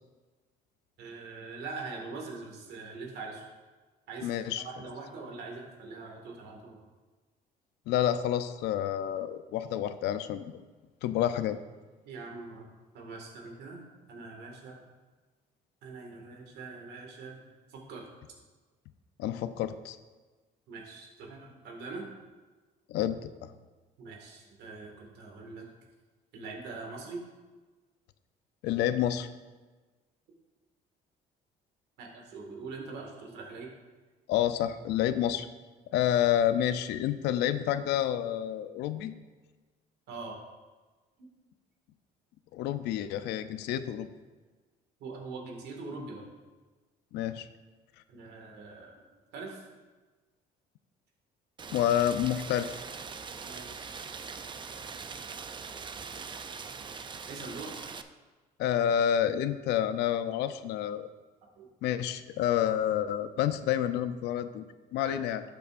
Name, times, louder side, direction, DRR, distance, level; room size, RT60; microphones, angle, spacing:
voice 1, 1.0-3.4 4.1-6.8 12.0-12.7 12.9-13.8 14.1-14.8 15.8-18.1 20.7-22.1 24.0-25.7 26.3-27.2 32.0-33.7 40.1-40.4 41.2-41.3 45.0-46.3 48.1-49.0 49.3-49.7 53.4-53.9 54.2-54.8 56.5-56.8 57.3-57.7 61.6-61.7 65.0-65.4, right 3 dB, 75° right, 0 dB, 2.0 m, -43 dB
voice 2, 4.2-4.6 7.9-10.6 11.0-11.6 19.2-20.0 22.9-23.3 28.6-29.3 34.3-35.5 35.9-39.1 42.5-44.1 47.1-47.5 51.7-52.7 58.6-61.1 61.8-64.6 64.9-65.4, left 10 dB, 85° left, 11 dB, 0.5 m, -29 dB
Rain, 51.6-58.0, right 5 dB, 30° right, 0.5 m, -42 dB
12.0 x 6.9 x 2.6 m, 1.3 s
cardioid pair, 110°, 17 cm